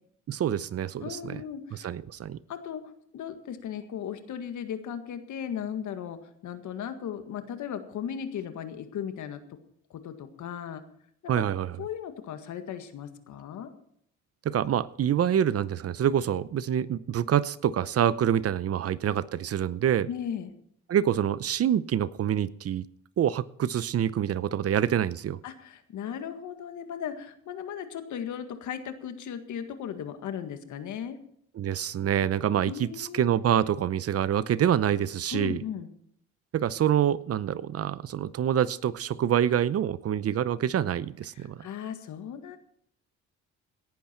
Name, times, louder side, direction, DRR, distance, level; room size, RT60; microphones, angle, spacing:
voice 1, 0.3-1.4 1.8-2.4 11.3-11.7 14.4-20.1 20.9-22.9 23.2-25.4 31.6-35.6 36.5-41.6, right 10 dB, 50° right, 18 dB, 0.7 m, -26 dB
voice 2, 1.0-1.9 2.5-2.8 3.1-9.4 9.9-10.8 11.3-11.4 11.8-13.7 20.1-20.5 25.4-31.2 32.6-33.2 35.3-35.9 41.3-42.6, left 8 dB, 75° left, 8 dB, 1.8 m, -36 dB
17.5 x 12.0 x 4.5 m, 0.69 s
cardioid pair, 90°, 30 cm